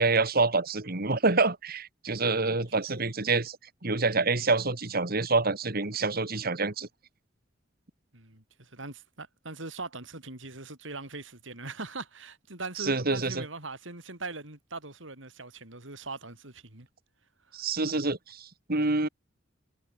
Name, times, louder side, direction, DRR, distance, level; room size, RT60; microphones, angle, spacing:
voice 1, 0.0-3.6 3.8-6.9 12.8-13.4 17.5-19.1, right 3 dB, 50° right, 2.3 m, -27 dB
voice 2, 8.1-16.9 17.5-17.6, right 3 dB, 80° right, 5.2 m, -41 dB
head